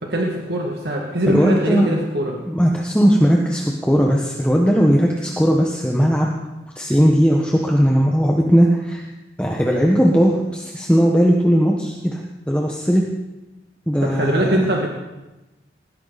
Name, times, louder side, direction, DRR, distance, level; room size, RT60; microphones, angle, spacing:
voice 1, 0.0-2.4 14.0-14.9, right 1 dB, 70° right, -1 dB, 2.3 m, -22 dB
voice 2, 1.3-2.0 2.5-6.3 6.7-9.0 9.4-12.2 12.5-13.0 13.9-14.7, equal, 5° left, -1 dB, 1.4 m, -17 dB
20.5 x 16.0 x 4.3 m, 1.0 s
head